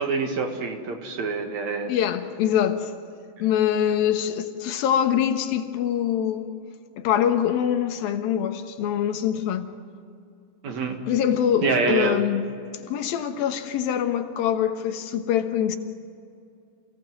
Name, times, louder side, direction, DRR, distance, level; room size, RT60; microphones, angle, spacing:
voice 1, 0.0-1.9 10.6-11.0 11.6-12.2, right 3 dB, 55° right, 4 dB, 3.1 m, -26 dB
voice 2, 1.9-2.9 3.4-6.5 7.0-9.7 11.1-12.5 12.8-15.8, left 9 dB, 85° left, 7 dB, 3.1 m, -24 dB
28.0 x 18.0 x 7.7 m, 2.5 s
omnidirectional pair, 4.1 m